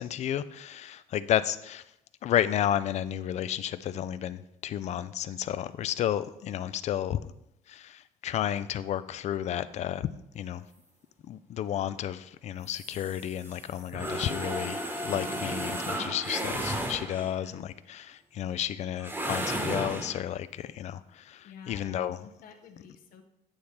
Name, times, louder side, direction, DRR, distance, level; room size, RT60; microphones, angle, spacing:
voice 1, 0.0-1.8 2.2-7.2 7.7-10.1 10.3-10.6 11.3-22.2, left 11 dB, 45° left, 15 dB, 0.4 m, -32 dB
sound 1, 12.6-17.5 19.0-20.2, right 1 dB, 15° right, 1.1 m, -34 dB
voice 2, 17.4-17.7 21.4-23.2, left 6 dB, 65° left, 6 dB, 0.9 m, -50 dB
8.7 x 3.3 x 5.7 m, 0.85 s
cardioid pair, 130°, 16 cm